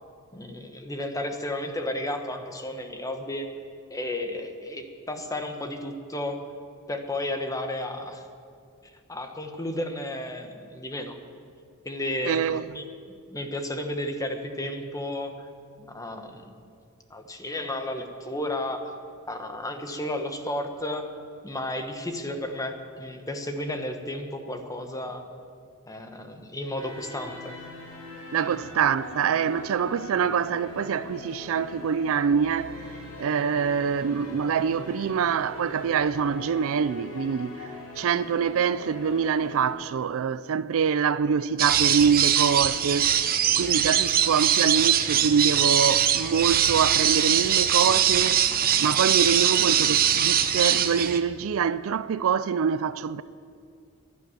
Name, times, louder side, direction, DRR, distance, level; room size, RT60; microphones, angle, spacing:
voice 1, 0.3-3.5 3.9-6.4 6.9-8.2 8.8-11.2 11.8-12.4 12.7-12.9 13.3-15.5 15.8-16.6 17.1-18.9 19.3-21.1 21.4-25.2 25.9-27.5 28.4-28.6, left 1 dB, 15° left, 1.2 m, -33 dB
voice 2, 12.2-12.7 28.3-32.8 33.2-43.1 43.6-48.5 48.8-53.2, right 7 dB, 65° right, 0.4 m, -25 dB
sound 1, 26.8-39.7, left 2 dB, 80° left, 5.0 m, -41 dB
sound 2, 41.6-51.2, right 9 dB, 40° right, 0.8 m, -22 dB
11.5 x 11.5 x 9.4 m
head